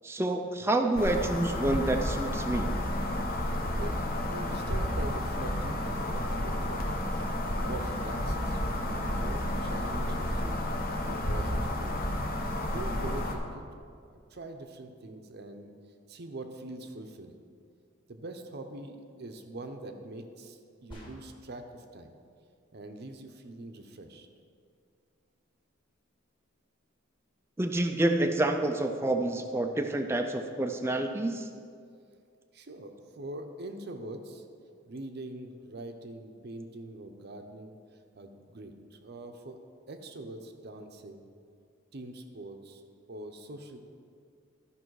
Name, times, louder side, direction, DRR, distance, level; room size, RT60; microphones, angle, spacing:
voice 1, 0.0-2.7 27.6-31.5, right 1 dB, 10° right, 5 dB, 0.4 m, -28 dB
sound 1, 1.0-13.4, left 1 dB, 45° left, 0.9 m, -31 dB
voice 2, 4.3-6.9 7.6-10.7 11.0-12.0 12.7-13.6 14.1-15.7 16.1-17.4 18.1-22.1 22.7-24.3 32.5-34.4 34.9-39.6 39.9-41.3 41.9-42.8 43.1-43.8, right 2 dB, 50° right, 6 dB, 0.7 m, -43 dB
sound 2, 20.9-21.6, equal, 25° left, 1.8 m, -48 dB
13.0 x 5.4 x 4.7 m, 2.3 s
head